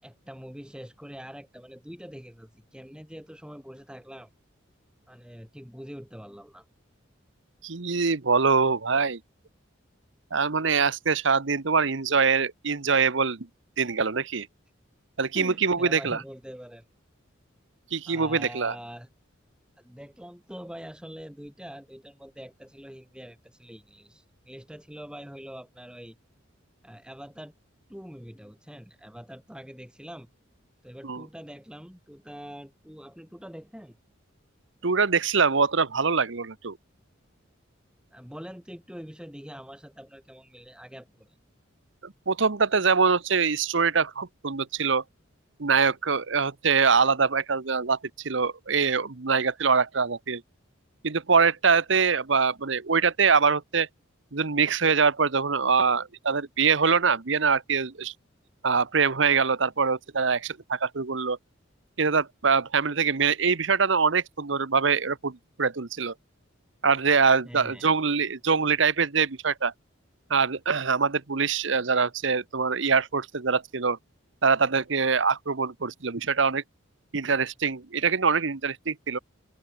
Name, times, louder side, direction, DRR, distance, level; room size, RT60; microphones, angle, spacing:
voice 1, 0.0-4.3 5.1-6.7 15.3-16.9 18.1-19.1 19.8-26.2 26.8-27.5 27.9-30.3 30.8-33.9 38.1-41.4 67.4-67.9, equal, 5° right, 5.3 m, -44 dB
voice 2, 7.6-9.2 10.3-13.5 13.8-14.5 15.2-16.2 17.9-18.7 31.0-31.2 34.8-36.8 42.0-45.0 45.6-48.0 48.2-50.4 51.0-53.9 54.3-58.1 58.6-61.4 62.0-66.1 66.8-69.7 70.3-74.0 74.4-76.6 77.1-79.2, right 5 dB, 65° right, 1.0 m, -24 dB
head